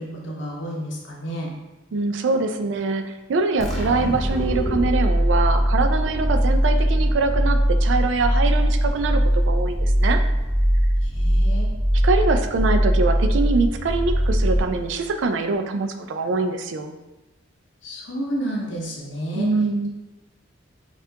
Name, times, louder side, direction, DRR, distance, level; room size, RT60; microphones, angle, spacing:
voice 1, 0.0-1.5 11.0-11.8 17.8-19.6, right 1 dB, 65° left, -2 dB, 0.7 m, -31 dB
voice 2, 1.9-10.2 12.0-17.0 19.3-19.9, right 3 dB, 65° right, 6 dB, 0.3 m, -24 dB
sound 1, 3.6-15.1, equal, 5° left, 0.6 m, -20 dB
5.6 x 2.4 x 2.8 m, 1.1 s
head